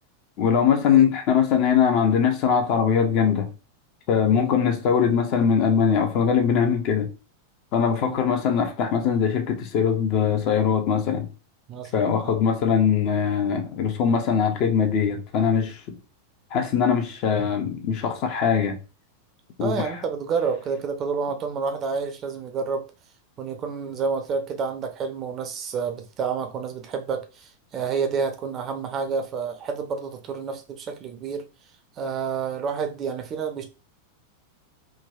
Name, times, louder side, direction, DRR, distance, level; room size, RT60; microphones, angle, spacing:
voice 1, 0.4-3.5 4.1-7.1 7.7-11.3 11.9-16.0 16.5-18.8 19.6-19.9, left 7 dB, 40° left, 0.5 m, -21 dB
voice 2, 11.7-12.4 19.6-22.8 23.4-31.4 32.0-33.7, right 5 dB, 30° right, 0.5 m, -29 dB
3.3 x 2.2 x 2.3 m
figure-of-eight pair, 90°, 0 cm